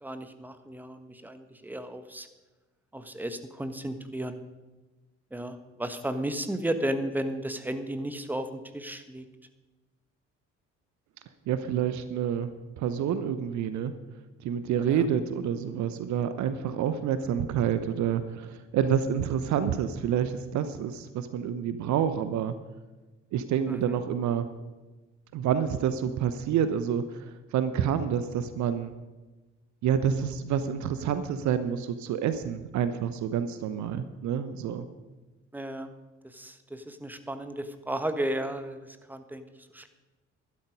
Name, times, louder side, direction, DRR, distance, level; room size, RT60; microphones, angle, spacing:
voice 1, 0.0-2.3 2.9-4.4 5.3-9.2 14.8-15.1 23.7-24.0 35.5-35.9 36.2-39.5 39.7-39.9, right 1 dB, 5° right, 9 dB, 1.3 m, -34 dB
voice 2, 11.5-12.5 12.8-13.9 14.4-22.5 23.3-24.5 25.3-28.9 29.8-34.9, right 8 dB, 50° right, 11 dB, 0.9 m, -28 dB
13.0 x 12.0 x 5.4 m, 1.2 s
figure-of-eight pair, 50°, 36 cm